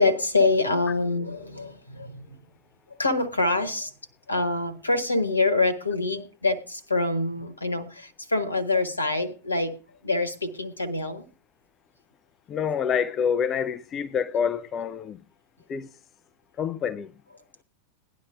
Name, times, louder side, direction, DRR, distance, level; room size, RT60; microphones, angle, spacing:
voice 1, 0.0-2.4 3.0-3.9 4.3-9.8 10.0-11.3, left 3 dB, 80° left, 1.2 m, -25 dB
voice 2, 12.5-15.2 15.7-15.9 16.6-17.1, left 7 dB, 30° left, 0.6 m, -27 dB
17.5 x 11.0 x 3.5 m
figure-of-eight pair, 90°, 0 cm